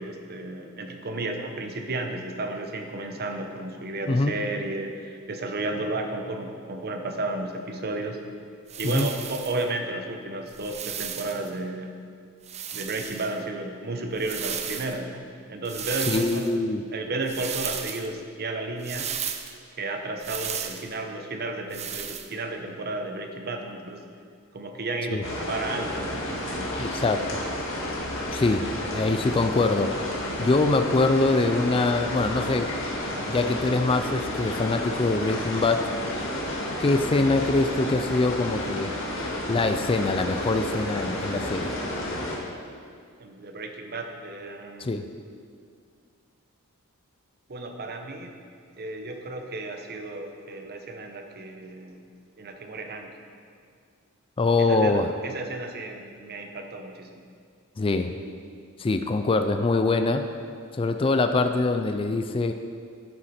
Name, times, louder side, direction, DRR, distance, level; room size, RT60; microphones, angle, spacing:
voice 1, 0.0-8.2 8.8-12.0 12.7-16.5 16.9-19.1 19.8-24.0 24.5-26.9 41.5-41.6 43.2-45.0 47.5-48.3 48.8-52.0 52.4-53.2 54.6-57.2, right 2 dB, 45° right, 4 dB, 0.9 m, -33 dB
sound 1, 8.7-9.6 10.5-11.5 12.4-13.4 14.1-15.0 15.6-16.5 17.3-18.1 18.8-19.5 20.2-20.9 21.7-22.3, right 8 dB, 30° right, 0.5 m, -34 dB
voice 2, 16.1-16.8 25.1-25.2 26.8-27.4 28.3-30.0 30.4-32.7 33.3-35.9 36.8-38.9 39.5-41.8 44.8-45.1 54.4-55.1 57.8-58.1 58.8-60.2 60.7-62.5, left 3 dB, 25° left, 7 dB, 0.4 m, -24 dB
sound 2, 25.2-42.4, left 1 dB, 60° left, 1.9 m, -31 dB
11.5 x 7.2 x 4.3 m, 2.2 s
head